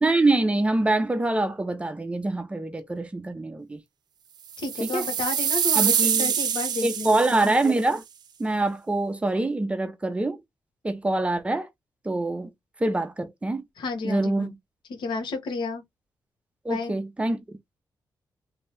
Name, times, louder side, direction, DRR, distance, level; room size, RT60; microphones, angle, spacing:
voice 1, 0.0-3.8 4.8-5.0 5.8-6.3 6.8-8.0 8.4-10.4 10.8-11.7 12.0-12.5 12.8-13.6 14.0-14.5 16.6-17.4, right 2 dB, 15° right, 0.5 m, -25 dB
sound 1, 4.5-7.7, right 8 dB, 65° right, 0.5 m, -25 dB
voice 2, 4.6-7.4 13.8-14.5 14.9-15.8 16.7-17.0, left 3 dB, 85° left, 1.1 m, -32 dB
2.8 x 2.6 x 3.3 m
wide cardioid pair, 135°, 8 cm